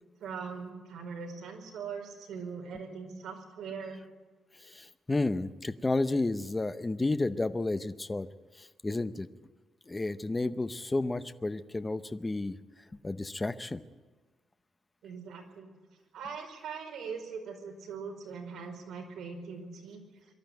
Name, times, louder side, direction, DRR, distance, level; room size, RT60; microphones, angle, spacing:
voice 1, 0.2-4.0 15.0-15.8 16.1-20.0, right 5 dB, 65° right, 2 dB, 4.9 m, -41 dB
voice 2, 4.6-8.3 8.6-9.3 9.9-12.6 13.0-13.8, left 2 dB, 15° left, 11 dB, 0.7 m, -31 dB
23.5 x 12.5 x 9.2 m, 1.3 s
cardioid pair, 165°, 0 cm